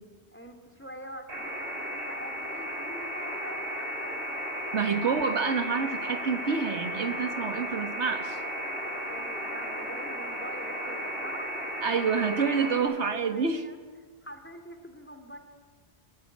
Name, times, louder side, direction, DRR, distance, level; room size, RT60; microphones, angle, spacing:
voice 1, 0.3-5.5 9.1-11.7 13.0-13.8 14.2-15.4, equal, 10° left, 6 dB, 2.9 m, -45 dB
sound 1, 1.3-12.8, equal, 55° right, 6.6 m, -35 dB
voice 2, 4.7-8.4 11.8-13.6, right 5 dB, 85° right, 8 dB, 1.8 m, -28 dB
25.5 x 16.0 x 10.0 m, 1.4 s
omnidirectional pair, 1.1 m